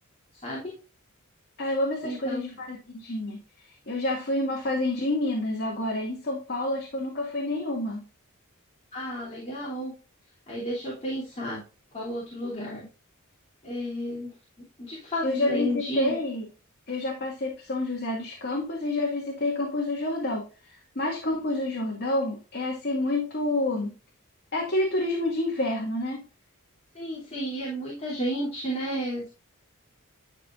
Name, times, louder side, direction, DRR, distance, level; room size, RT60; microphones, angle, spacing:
voice 1, 0.4-0.8 2.0-2.4 8.9-9.9 10.5-11.6 11.9-12.8 13.6-14.3 14.8-16.2 26.9-29.3, equal, 30° left, -5 dB, 3.2 m, -32 dB
voice 2, 1.6-3.4 3.6-8.0 15.2-16.5 16.9-23.9 24.5-26.2, left 2 dB, 50° left, -1 dB, 2.1 m, -28 dB
11.0 x 5.7 x 2.5 m, 0.32 s
head